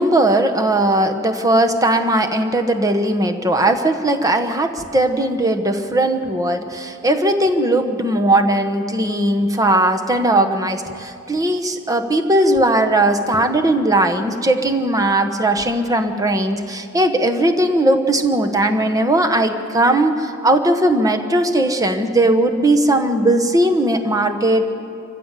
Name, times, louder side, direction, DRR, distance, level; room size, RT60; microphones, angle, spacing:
voice 1, 0.0-24.6, right 1 dB, 15° right, 6 dB, 1.1 m, -18 dB
26.0 x 15.5 x 7.5 m, 2.6 s
head